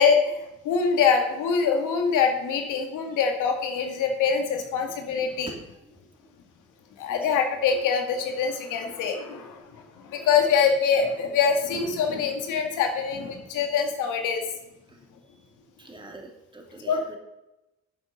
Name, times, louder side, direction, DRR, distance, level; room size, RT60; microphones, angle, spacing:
voice 1, 0.0-5.5 7.0-14.4 16.9-17.1, left 6 dB, 90° left, 4 dB, 1.9 m, -24 dB
voice 2, 15.8-17.1, right 2 dB, 15° right, 1 dB, 2.8 m, -44 dB
10.5 x 7.0 x 6.4 m, 0.94 s
cardioid pair, 90°, 30 cm